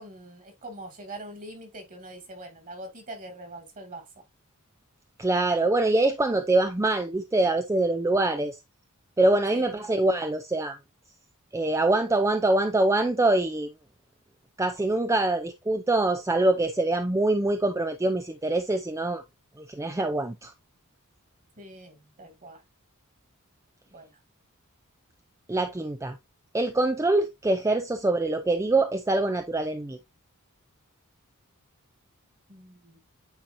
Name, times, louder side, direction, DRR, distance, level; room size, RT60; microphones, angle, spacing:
voice 1, 0.0-4.1 9.5-9.7 21.6-22.6 23.9-24.2 32.5-33.0, right 1 dB, 40° right, 2.3 m, -43 dB
voice 2, 5.2-8.6 9.2-10.8 11.5-13.7 14.6-19.2 19.6-20.5 25.5-26.2 26.5-30.0, right 2 dB, 15° right, 0.4 m, -24 dB
8.8 x 4.4 x 2.7 m
head